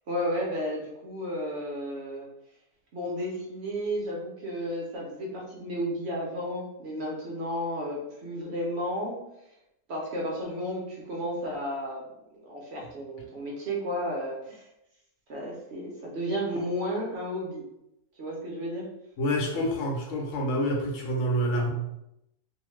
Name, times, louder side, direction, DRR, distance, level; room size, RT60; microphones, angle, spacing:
voice 1, 0.1-2.3 2.9-9.2 9.9-12.0 12.4-14.7 15.3-17.6 18.2-18.8, equal, 65° right, -3 dB, 0.6 m, -33 dB
voice 2, 19.2-21.7, equal, 60° left, 0 dB, 0.8 m, -27 dB
2.7 x 2.1 x 3.0 m, 0.84 s
omnidirectional pair, 1.7 m